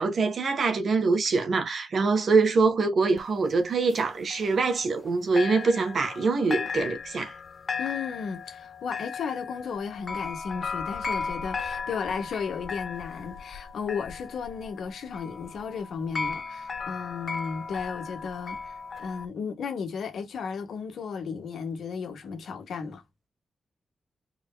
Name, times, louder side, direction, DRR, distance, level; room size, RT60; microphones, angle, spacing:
voice 1, 0.0-7.3, right 4 dB, 60° right, 1.5 m, -24 dB
sound 1, 3.2-5.1 5.4-19.3, left 5 dB, 45° left, 0.8 m, -36 dB
voice 2, 7.8-23.0, left 6 dB, 80° left, 1.5 m, -34 dB
4.7 x 3.4 x 2.3 m
cardioid pair, 100°, 0 cm